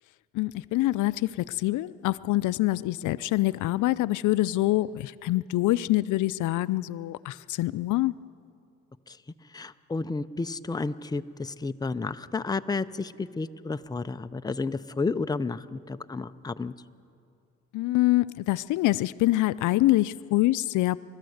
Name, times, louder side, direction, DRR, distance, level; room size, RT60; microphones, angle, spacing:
voice 1, 0.3-8.1 17.7-21.0, left 17 dB, 80° left, 17 dB, 0.5 m, -25 dB
voice 2, 9.5-16.7, left 3 dB, 15° left, 10 dB, 0.6 m, -31 dB
29.0 x 13.0 x 7.9 m, 2.4 s
cardioid pair, 90°, 30 cm